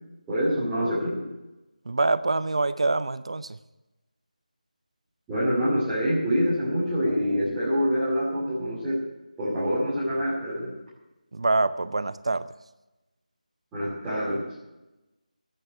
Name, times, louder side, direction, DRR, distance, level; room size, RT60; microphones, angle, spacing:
voice 1, 0.3-1.2 5.3-9.0 9.4-10.7 13.7-14.4, equal, 5° right, -15 dB, 2.7 m, -25 dB
voice 2, 1.9-3.6 11.3-12.5, right 3 dB, 45° right, 14 dB, 0.5 m, -25 dB
13.0 x 8.8 x 7.8 m, 1.0 s
figure-of-eight pair, 175°, 4 cm